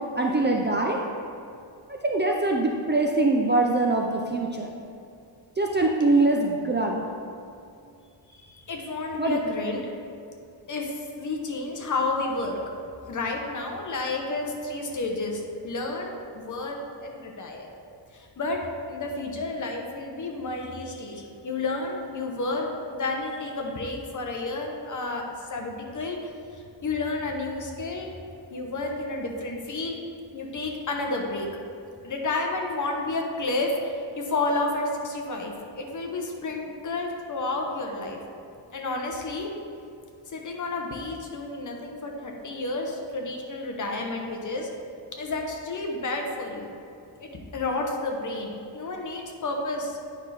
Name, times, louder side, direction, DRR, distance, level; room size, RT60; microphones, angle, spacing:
voice 1, 0.2-1.0 2.0-4.7 5.6-7.0 9.2-9.4, right 2 dB, 25° right, 0 dB, 0.3 m, -23 dB
voice 2, 8.7-9.9 10.7-12.6 13.1-17.7 18.1-18.6 18.9-28.1 28.5-30.0 30.3-31.5 32.0-38.2 38.7-39.5 40.3-44.7 45.2-46.7 47.2-50.0, left 2 dB, 45° left, 1 dB, 0.9 m, -31 dB
9.1 x 5.6 x 3.3 m, 2.5 s
wide cardioid pair, 180°, 44 cm